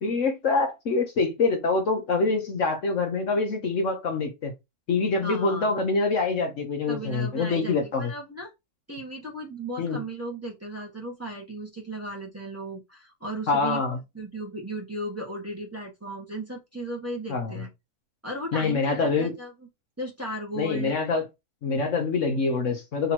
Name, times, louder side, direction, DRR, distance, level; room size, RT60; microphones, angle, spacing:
voice 1, 0.0-4.5 4.9-8.1 9.8-10.0 13.5-14.0 17.3-17.5 18.5-19.3 20.6-21.3 21.6-23.1, left 4 dB, 60° left, 1.3 m, -25 dB
voice 2, 5.2-5.7 6.9-8.5 8.9-13.8 14.1-17.7 18.2-19.5 20.0-20.9, right 1 dB, 10° right, 1.3 m, -36 dB
3.8 x 2.9 x 4.2 m
omnidirectional pair, 1.5 m